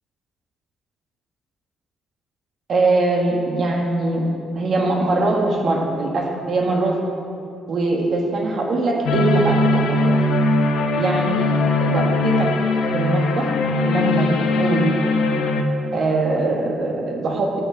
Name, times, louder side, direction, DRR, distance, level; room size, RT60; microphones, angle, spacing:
voice 1, 2.7-4.2 4.5-7.0 7.7-10.2 11.0-11.4 11.8-12.5 12.9-13.5 13.8-14.9 15.9-17.6, right 2 dB, 55° right, 0 dB, 1.5 m, -22 dB
sound 1, 9.0-15.6, left 2 dB, 85° left, 0.9 m, -20 dB
14.0 x 5.9 x 5.0 m, 2.6 s
cardioid pair, 100°, 0 cm